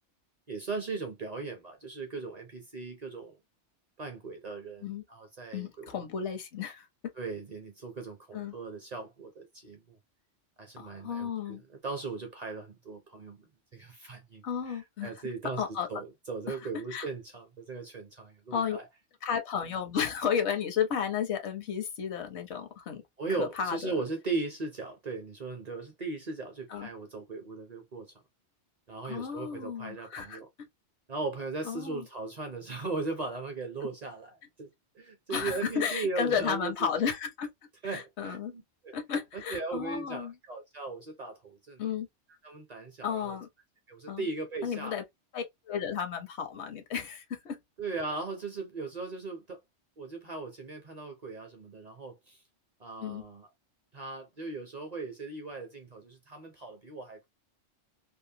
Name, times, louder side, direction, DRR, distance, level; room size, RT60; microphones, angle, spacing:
voice 1, 0.5-3.4 4.0-5.9 7.2-10.0 10.6-13.5 13.7-15.6 15.9-18.9 23.2-28.1 28.9-30.5 31.1-34.7 34.9-36.9 37.8-38.9 39.3-41.8 42.4-43.4 43.9-44.9 47.8-49.6 50.0-52.4 52.8-53.5 53.9-57.3, right 3 dB, 45° right, 0.7 m, -38 dB
voice 2, 5.5-6.9 8.3-8.5 10.8-11.6 14.4-15.1 15.6-15.9 16.5-16.6 16.9-17.1 18.5-18.8 19.2-23.0 23.4-23.9 26.7-26.9 29.0-30.7 31.6-32.0 35.3-37.5 37.8-38.5 38.9-40.3 41.8-42.1 43.0-43.5 44.1-44.3 44.6-45.0 45.3-47.6 53.0-53.2, left 7 dB, 70° left, 1.0 m, -33 dB
2.8 x 2.1 x 2.7 m
omnidirectional pair, 1.2 m